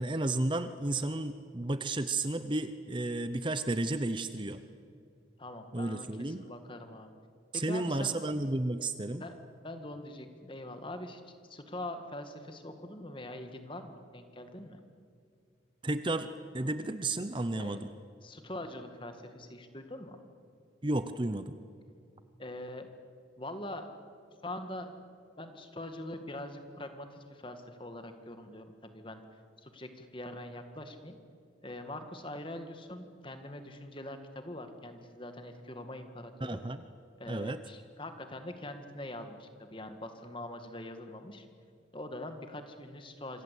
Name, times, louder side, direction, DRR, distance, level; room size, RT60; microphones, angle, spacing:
voice 1, 0.0-4.6 5.7-6.4 7.5-9.2 15.8-17.9 20.8-21.5 36.4-36.8 37.3-37.6, right 2 dB, 25° right, 11 dB, 0.8 m, -32 dB
voice 2, 5.4-7.1 7.5-8.2 9.2-14.8 17.5-17.8 18.2-20.2 22.4-22.9 23.4-23.9 24.4-24.9 25.4-29.2 29.6-31.2 31.6-36.6 37.2-41.5 41.9-43.4, left 1 dB, 25° left, 7 dB, 2.0 m, -43 dB
27.0 x 25.5 x 8.4 m, 2.4 s
head